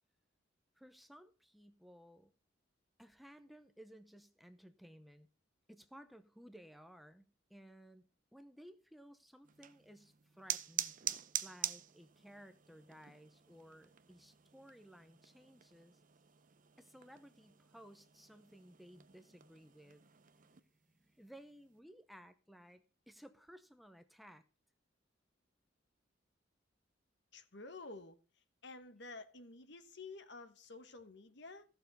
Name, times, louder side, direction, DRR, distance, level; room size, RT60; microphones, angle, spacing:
voice 1, 0.8-2.3 3.0-5.3 5.7-7.2 7.5-8.0 8.3-11.0 11.4-16.0 16.8-24.4, equal, ahead, 0.7 m, -58 dB
sound 1, 9.4-20.6, right 11 dB, 45° right, 0.7 m, -46 dB
voice 2, 27.3-28.2 28.6-31.6, left 3 dB, 65° left, 1.3 m, -51 dB
15.0 x 6.9 x 5.4 m
head